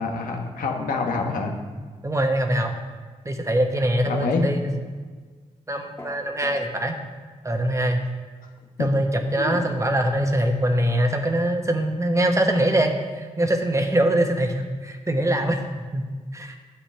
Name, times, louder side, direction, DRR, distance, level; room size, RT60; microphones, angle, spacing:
voice 1, 0.0-1.5 4.1-4.4 8.8-8.9 9.4-9.6, left 4 dB, 85° left, 2 dB, 1.2 m, -26 dB
voice 2, 2.0-2.7 3.2-4.7 5.7-6.9 7.4-8.0 8.8-15.6 15.9-16.1 16.3-16.6, right 1 dB, 20° right, 4 dB, 1.2 m, -23 dB
sound 1, 6.0-6.6, left 2 dB, 20° left, 1.3 m, -38 dB
10.0 x 7.4 x 3.4 m, 1.5 s
cardioid pair, 50°, 14 cm